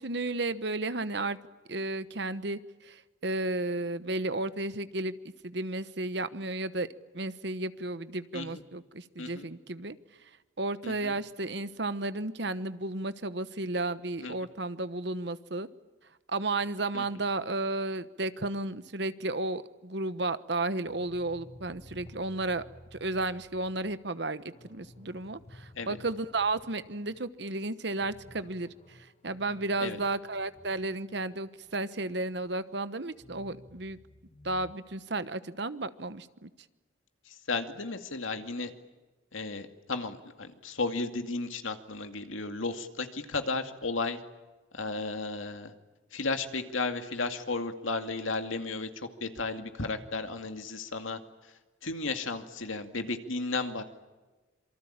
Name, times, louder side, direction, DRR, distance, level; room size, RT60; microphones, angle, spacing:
voice 1, 0.0-1.4 1.7-5.1 5.4-6.9 7.1-9.9 10.6-15.7 16.3-22.6 22.9-29.0 29.2-34.0 34.4-36.5, right 2 dB, 55° right, 13 dB, 1.1 m, -33 dB
voice 2, 10.8-11.2 14.2-14.3 16.9-17.1 25.8-26.0 29.8-30.0 37.3-38.7 39.3-44.2 44.7-45.7 46.1-51.5 51.8-53.8, left 3 dB, 85° left, 7 dB, 2.3 m, -34 dB
sound 1, 20.8-27.3 27.6-27.7 28.0-32.6 33.1-34.7, left 1 dB, 35° left, 1.5 m, -54 dB
27.0 x 24.0 x 8.8 m, 1.2 s
head